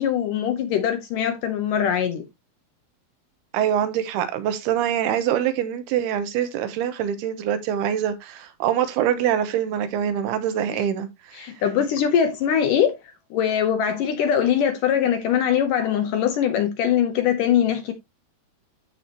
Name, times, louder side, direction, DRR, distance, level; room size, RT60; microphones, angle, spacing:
voice 1, 0.0-2.3 10.7-10.9 11.3-13.0 13.3-17.9, left 9 dB, 70° left, 2.1 m, -22 dB
voice 2, 3.5-11.5, right 9 dB, 80° right, 3.0 m, -24 dB
13.5 x 4.8 x 2.9 m
omnidirectional pair, 4.6 m